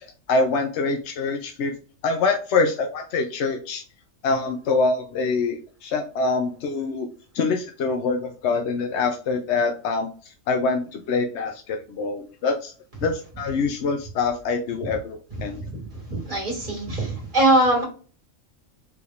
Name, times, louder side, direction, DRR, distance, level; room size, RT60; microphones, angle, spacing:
voice 1, 0.3-1.7 2.0-3.8 4.2-7.1 7.3-12.7 13.0-15.6, left 4 dB, 65° left, 5 dB, 0.8 m, -25 dB
voice 2, 16.1-17.8, right 1 dB, 40° right, -3 dB, 2.2 m, -21 dB
4.9 x 3.3 x 2.4 m, 0.39 s
omnidirectional pair, 1.4 m